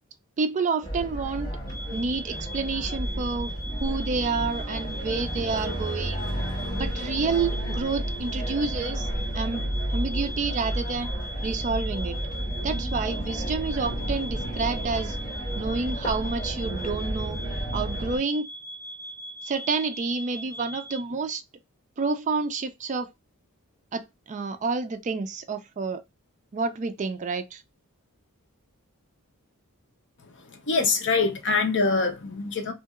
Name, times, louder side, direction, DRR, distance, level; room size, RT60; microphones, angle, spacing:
voice 1, 0.4-1.5 1.9-3.5 3.8-6.2 6.7-9.1 9.3-11.1 11.4-12.2 12.6-15.2 15.6-17.4 17.7-18.5 19.4-21.4 22.0-23.1 23.9-26.0 26.5-27.6, right 4 dB, 35° right, 0.3 m, -29 dB
sound 1, 0.8-18.2, right 1 dB, 25° left, 1.9 m, -31 dB
sound 2, 1.7-21.0, right 1 dB, 15° right, 1.1 m, -40 dB
voice 2, 30.2-32.7, left 4 dB, 55° left, 0.8 m, -25 dB
2.8 x 2.8 x 2.3 m
head